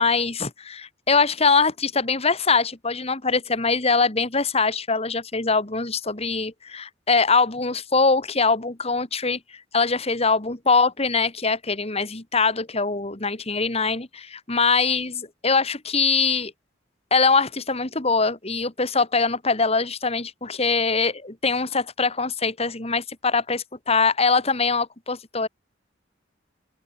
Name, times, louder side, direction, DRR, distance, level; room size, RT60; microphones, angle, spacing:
voice 1, 0.0-16.5 17.1-25.5, left 4 dB, 30° left, 2.1 m, -23 dB
open air
head